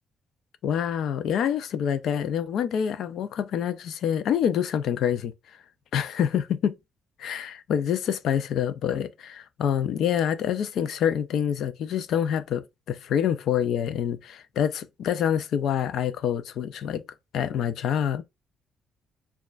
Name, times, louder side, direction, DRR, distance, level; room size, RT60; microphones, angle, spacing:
voice 1, 0.6-5.3 5.9-6.8 7.2-17.0 17.3-18.2, left 9 dB, 65° left, 0.4 m, -26 dB
6.5 x 2.3 x 2.4 m
cardioid pair, 140°, 0 cm